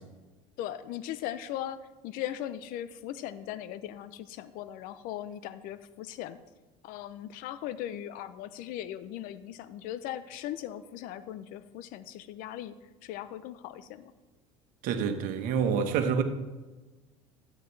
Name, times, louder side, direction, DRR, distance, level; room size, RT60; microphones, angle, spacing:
voice 1, 0.6-1.8 2.0-6.4 6.8-12.7 13.0-14.1, left 12 dB, 65° left, 14 dB, 0.7 m, -38 dB
voice 2, 14.8-16.2, right 7 dB, 65° right, 7 dB, 1.2 m, -27 dB
13.5 x 8.3 x 3.3 m, 1.2 s
supercardioid pair, 90°, 15 cm